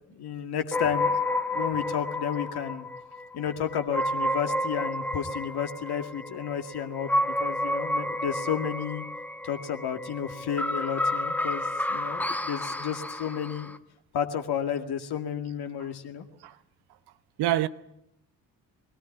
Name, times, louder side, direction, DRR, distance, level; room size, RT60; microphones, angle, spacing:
voice 1, 0.1-1.2 1.5-2.9 3.3-9.1 9.4-13.7 14.1-16.2, left 8 dB, 50° left, 2.2 m, -32 dB
sound 1, 0.7-13.8, left 1 dB, 5° left, 1.1 m, -30 dB
voice 2, 11.4-11.6 15.8-15.9 16.4-16.6 17.4-17.7, right 13 dB, 55° right, 1.0 m, -27 dB
21.5 x 17.5 x 8.7 m
figure-of-eight pair, 40°, 48 cm